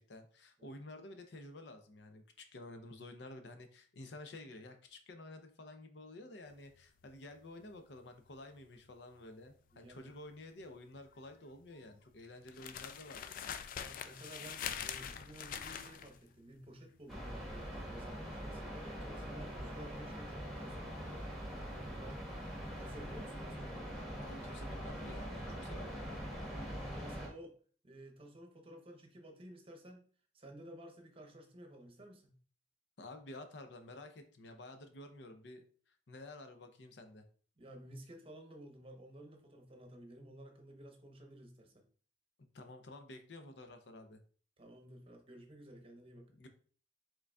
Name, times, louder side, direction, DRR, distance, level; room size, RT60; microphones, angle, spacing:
voice 1, 0.0-13.2 24.2-26.2 33.0-37.2 42.4-44.2 46.3-46.5, left 2 dB, 80° left, 7 dB, 0.6 m, -51 dB
sound 1, 6.5-22.7 22.9-23.3, left 8 dB, 50° left, 0.3 m, -46 dB
voice 2, 9.7-10.1 13.8-20.9 21.8-22.3 22.8-24.1 26.8-27.5 27.8-30.0 30.3-32.4 37.6-41.8 44.6-46.3, right 1 dB, 35° right, 4 dB, 0.8 m, -53 dB
sound 2, 17.1-27.3, equal, ahead, 1.3 m, -43 dB
5.0 x 3.8 x 2.3 m, 0.43 s
head